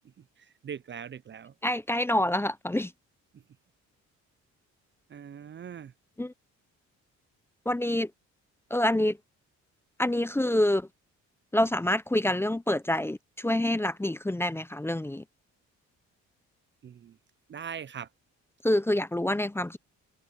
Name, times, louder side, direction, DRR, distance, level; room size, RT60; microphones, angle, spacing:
voice 1, 0.4-1.5 5.1-5.9 16.8-17.2 17.5-18.1, right 8 dB, 40° right, 0.6 m, -41 dB
voice 2, 1.6-2.9 6.2-6.3 7.7-8.1 8.7-9.2 10.0-10.9 11.5-15.2 18.6-19.8, left 1 dB, 10° left, 0.7 m, -27 dB
cardioid pair, 90°, 30 cm